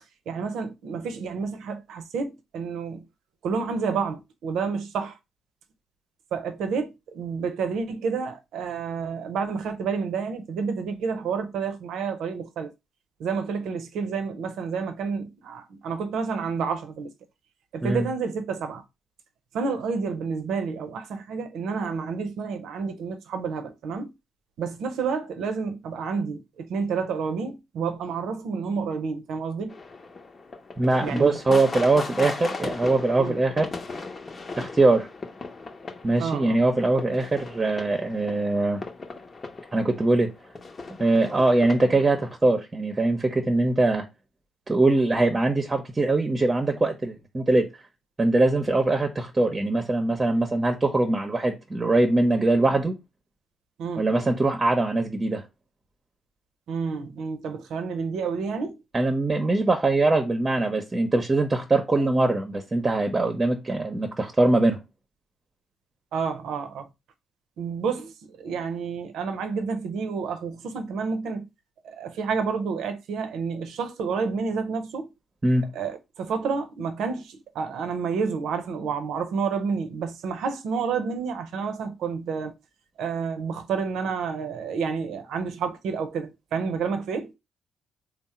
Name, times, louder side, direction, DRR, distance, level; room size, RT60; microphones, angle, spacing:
voice 1, 0.3-3.0 3.4-5.2 6.3-12.7 13.2-17.1 17.7-18.8 19.5-24.1 24.6-29.7 31.0-31.6 33.2-33.4 36.2-36.6 53.8-54.1 56.7-58.8 66.1-66.9 67.6-71.4 71.8-75.1 75.7-82.5 83.0-87.3, right 5 dB, 75° right, 0.6 m, -29 dB
sound 1, 29.7-42.4, left 3 dB, 40° left, 0.8 m, -38 dB
voice 2, 30.8-33.7 34.6-35.1 36.0-38.8 39.7-40.3 41.0-44.1 44.7-47.7 48.2-53.0 54.0-55.4 58.9-64.8 75.4-75.7, right 2 dB, 30° right, 0.8 m, -22 dB
3.6 x 2.0 x 4.2 m
hypercardioid pair, 50°, 0 cm